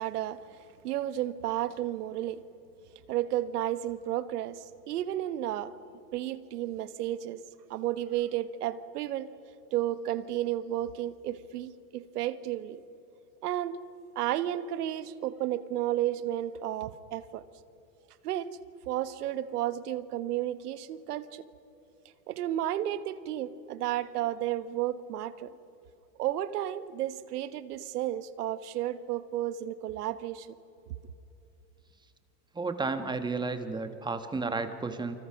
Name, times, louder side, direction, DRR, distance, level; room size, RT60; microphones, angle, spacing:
voice 1, 0.0-2.4 3.1-5.7 6.1-7.4 7.7-9.3 9.7-12.8 13.4-13.8 14.1-17.4 18.2-18.5 18.9-21.4 22.3-25.5 26.2-30.5, right 12 dB, 80° right, 13 dB, 1.4 m, -32 dB
voice 2, 32.5-35.2, right 3 dB, 10° right, 8 dB, 1.3 m, -32 dB
28.5 x 25.5 x 5.9 m, 2.8 s
supercardioid pair, 135°, 46 cm